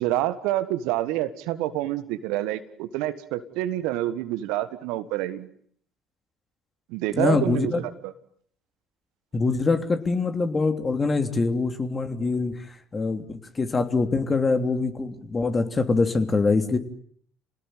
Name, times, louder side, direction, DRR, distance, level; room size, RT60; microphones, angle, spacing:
voice 1, 0.0-5.5 6.9-7.7 8.0-8.1, right 14 dB, 70° right, 12 dB, 1.6 m, -27 dB
voice 2, 7.1-7.8 9.3-16.8, left 3 dB, 30° left, 7 dB, 3.2 m, -24 dB
28.5 x 19.0 x 9.3 m, 0.63 s
hypercardioid pair, 60°, 0 cm